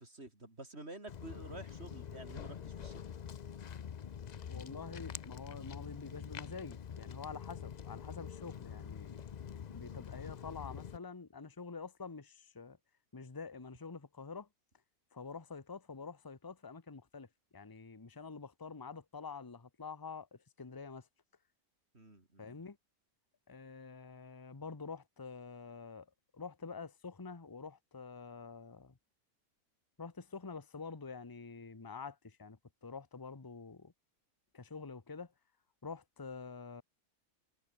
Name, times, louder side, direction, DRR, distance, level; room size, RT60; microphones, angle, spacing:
voice 1, 0.0-3.0 21.9-22.6, right 2 dB, 45° right, 4.6 m, -50 dB
Walk footsteps, 1.1-11.0, left 8 dB, 60° left, 0.4 m, -46 dB
voice 2, 4.5-9.2 9.7-12.8 13.1-14.5 15.1-21.1 22.4-22.8 23.5-26.1 26.3-29.0 30.0-33.9 34.5-35.3 35.8-36.8, left 5 dB, 15° left, 1.1 m, -47 dB
omnidirectional pair, 1.5 m